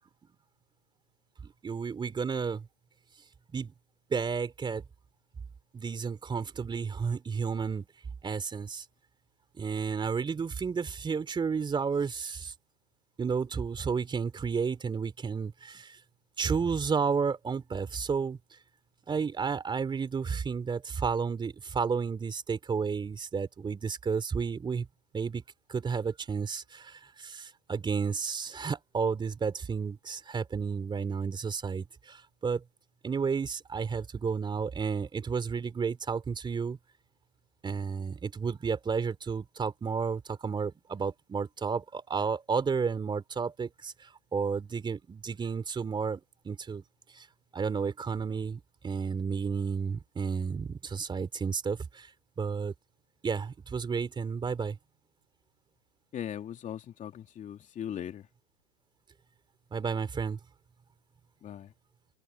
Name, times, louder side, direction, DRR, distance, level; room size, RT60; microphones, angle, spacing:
voice 1, 1.6-2.7 3.5-3.7 4.1-4.8 5.7-7.8 8.2-8.9 9.6-12.5 13.2-16.0 16.4-18.4 19.1-24.9 25.1-25.4 25.7-32.6 33.0-36.8 37.6-46.8 47.1-47.3 47.5-52.1 52.4-52.7 53.2-54.8 59.7-60.4, right 5 dB, 15° right, 3.5 m, -32 dB
voice 2, 56.1-58.2 61.4-61.7, left 10 dB, 25° left, 3.0 m, -39 dB
hypercardioid pair, 125°, 33 cm